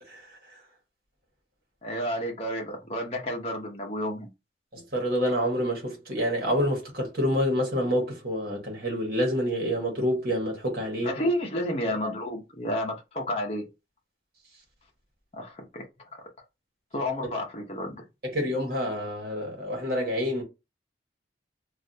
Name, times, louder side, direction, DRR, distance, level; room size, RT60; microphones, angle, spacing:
voice 1, 1.8-4.3 11.0-13.6 15.3-15.8 16.9-18.0, left 1 dB, 35° left, 0.7 m, -31 dB
voice 2, 4.7-11.1 18.2-20.4, equal, 55° right, 1.4 m, -27 dB
3.2 x 2.4 x 2.7 m
head